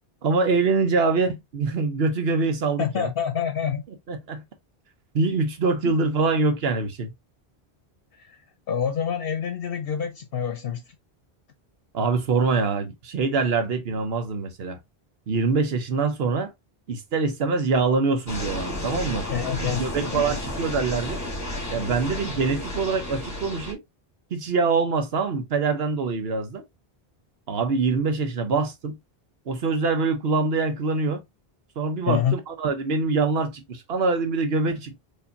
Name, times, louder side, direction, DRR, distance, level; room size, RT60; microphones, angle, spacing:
voice 1, 0.2-3.1 4.1-4.4 5.1-7.1 11.9-14.8 15.3-16.5 16.9-19.3 19.6-21.2 21.7-23.8 24.3-26.6 27.5-29.0 29.5-31.2 31.8-35.0, right 4 dB, 75° right, 1.1 m, -24 dB
voice 2, 2.8-3.8 5.8-5.9 8.2-8.4 8.7-10.8 19.3-20.4 32.1-32.4 34.7-34.8, left 8 dB, 70° left, 0.8 m, -27 dB
sound 1, 18.3-23.7, left 1 dB, 15° left, 1.1 m, -32 dB
4.6 x 2.7 x 2.7 m
omnidirectional pair, 1.0 m